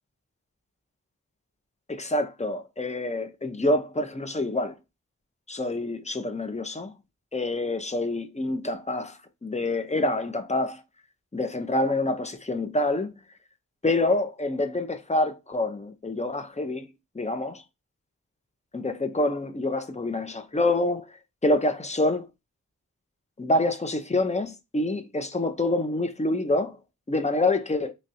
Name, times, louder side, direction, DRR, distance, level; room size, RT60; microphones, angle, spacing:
voice 1, 1.9-4.7 5.5-6.9 7.3-10.8 11.3-13.1 13.8-16.9 17.1-17.6 18.7-21.1 21.4-22.3 23.4-26.8 27.1-27.9, left 2 dB, 20° left, 0.6 m, -26 dB
3.1 x 2.5 x 4.1 m
cardioid pair, 40°, 32 cm